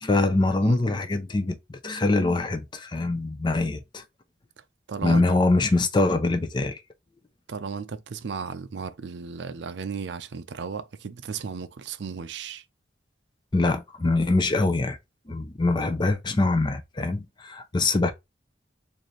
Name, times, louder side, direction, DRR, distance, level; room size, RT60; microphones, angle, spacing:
voice 1, 0.0-4.0 5.0-6.8 13.5-15.0 15.3-18.1, left 2 dB, 25° left, 0.5 m, -24 dB
voice 2, 4.9-5.2 7.5-12.6, right 5 dB, 70° right, 0.5 m, -35 dB
4.0 x 2.6 x 3.1 m
head